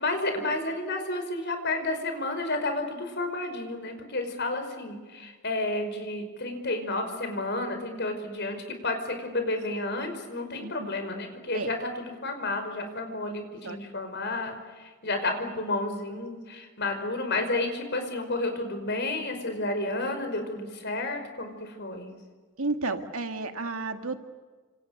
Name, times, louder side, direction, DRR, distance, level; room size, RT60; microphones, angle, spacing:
voice 1, 0.0-22.1, left 2 dB, 50° left, 6 dB, 5.4 m, -31 dB
voice 2, 10.6-10.9 11.5-11.7 13.6-13.8 22.6-24.2, right 3 dB, 75° right, 6 dB, 2.1 m, -32 dB
29.5 x 27.5 x 6.7 m, 1.4 s
head